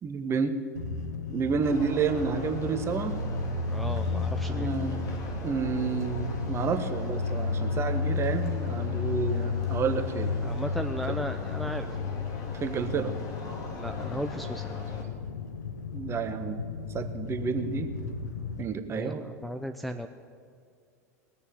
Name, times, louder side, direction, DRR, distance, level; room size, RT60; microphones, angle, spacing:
voice 1, 0.0-0.6 1.3-3.2 4.5-5.0 5.4-10.3 11.0-11.2 12.6-13.1 15.9-16.6 16.9-17.9 18.6-19.2, right 6 dB, 30° right, 7 dB, 1.4 m, -30 dB
sound 1, 0.8-18.6, left 4 dB, 85° left, 1.1 m, -33 dB
sound 2, 1.6-15.0, left 2 dB, 40° left, 2.6 m, -42 dB
voice 2, 3.7-4.7 9.9-10.0 10.4-11.9 13.7-14.7 18.9-20.1, equal, ahead, 5 dB, 0.7 m, -36 dB
20.0 x 6.9 x 8.7 m, 2.3 s
hypercardioid pair, 90°, 9 cm